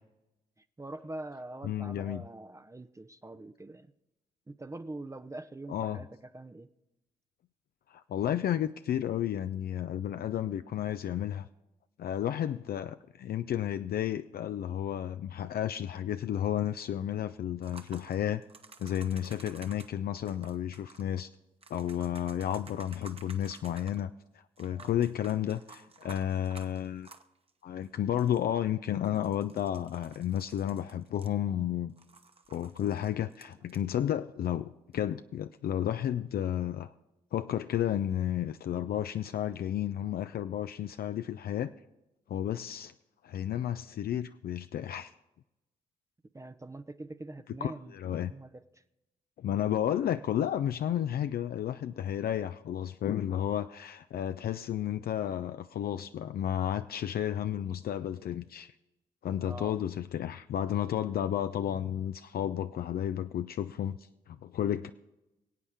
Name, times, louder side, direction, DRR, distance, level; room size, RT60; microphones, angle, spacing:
voice 1, 0.6-3.9 4.5-6.7 24.7-25.0 46.3-48.8 59.4-59.8, right 2 dB, 15° right, 11 dB, 0.6 m, -44 dB
voice 2, 1.7-2.2 5.7-6.0 7.9-11.5 12.0-18.4 18.8-21.3 21.7-24.1 24.6-27.1 27.6-31.9 32.5-36.9 37.3-41.7 42.3-42.9 43.2-45.1 47.6-48.3 49.4-58.7 59.2-64.9, left 10 dB, 55° left, 10 dB, 0.4 m, -32 dB
sound 1, 17.6-19.9 20.3-21.1 21.6-24.0 24.6-27.5 27.8-27.9 28.1-28.5 29.0-31.6 32.0-33.8 34.9-35.0, right 4 dB, 30° right, 1.1 m, -53 dB
24.0 x 8.4 x 3.6 m, 0.97 s
hypercardioid pair, 50°, 19 cm